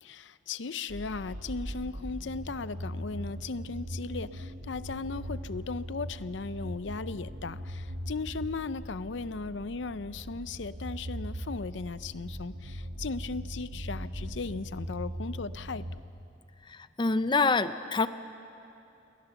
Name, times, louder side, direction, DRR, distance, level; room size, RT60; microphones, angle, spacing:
voice 1, 0.0-15.9, left 4 dB, 75° left, 15 dB, 0.6 m, -37 dB
sound 1, 0.9-16.0, equal, 85° right, 1.6 m, -40 dB
voice 2, 17.0-18.1, left 3 dB, 25° left, 12 dB, 0.5 m, -25 dB
28.5 x 21.5 x 7.0 m, 2.8 s
head